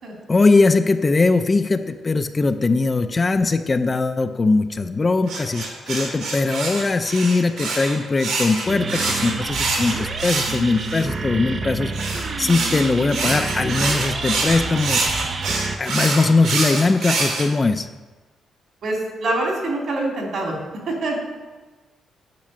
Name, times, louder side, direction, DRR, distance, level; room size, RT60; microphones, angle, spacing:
voice 1, 0.3-15.0 15.8-17.9, left 3 dB, 25° left, 8 dB, 0.5 m, -20 dB
sound 1, 5.3-11.1 11.9-17.4, right 3 dB, 90° right, 3.2 m, -25 dB
sound 2, 8.7-15.8, right 4 dB, 35° right, 0.6 m, -28 dB
voice 2, 18.8-20.6 20.9-21.2, right 2 dB, 60° right, -1 dB, 3.4 m, -25 dB
10.5 x 6.1 x 8.7 m, 1.3 s
cardioid pair, 145°, 0 cm